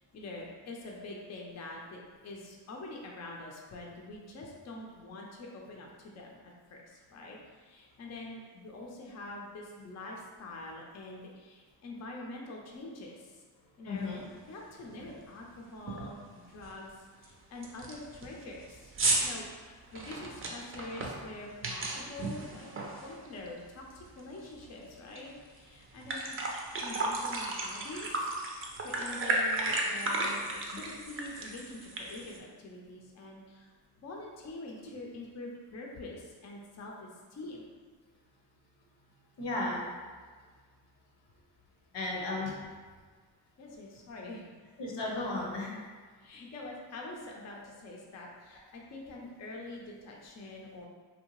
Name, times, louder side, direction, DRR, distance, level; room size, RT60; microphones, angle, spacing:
voice 1, 0.1-13.4 13.8-14.1 14.5-18.9 19.2-22.7 23.0-26.4 26.8-33.7 34.0-37.6 42.1-42.4 43.6-44.5 46.2-50.9, left 2 dB, 40° left, -1 dB, 0.5 m, -45 dB
voice 2, 13.9-14.2 16.5-16.6 39.4-39.8 41.9-42.5 44.8-45.7, left 2 dB, 80° left, -2 dB, 0.8 m, -34 dB
sound 1, 14.2-14.3 14.8-15.1 15.4-15.5 15.9-16.2 16.6-16.7 17.2-17.3 17.6-23.6 23.9-25.2 25.6-25.7 25.9-32.4, right 2 dB, 30° right, 0.5 m, -34 dB
2.7 x 2.2 x 2.9 m, 1.5 s
cardioid pair, 70°, 41 cm